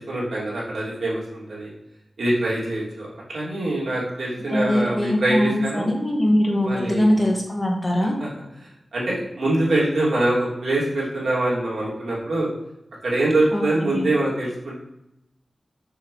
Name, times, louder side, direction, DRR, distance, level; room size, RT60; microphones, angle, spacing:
voice 1, 0.0-1.7 2.2-5.9 6.6-7.1 8.2-8.3 8.9-12.5 13.0-14.8, right 1 dB, 90° right, -6 dB, 2.8 m, -24 dB
voice 2, 4.5-8.2 13.5-14.1, left 1 dB, 25° left, -1 dB, 1.8 m, -22 dB
7.0 x 6.8 x 3.2 m, 0.86 s
wide cardioid pair, 80°, 0 cm